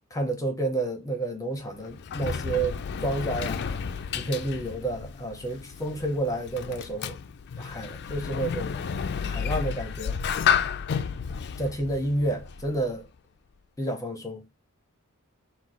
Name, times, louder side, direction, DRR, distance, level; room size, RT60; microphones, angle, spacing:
voice 1, 0.1-3.8 4.1-7.2 7.6-8.8 9.2-10.2 11.6-13.1 13.8-14.4, right 2 dB, 15° left, 0.8 m, -30 dB
Sliding door, 1.6-13.0, left 7 dB, 50° left, 0.4 m, -31 dB
4.0 x 2.4 x 4.6 m
head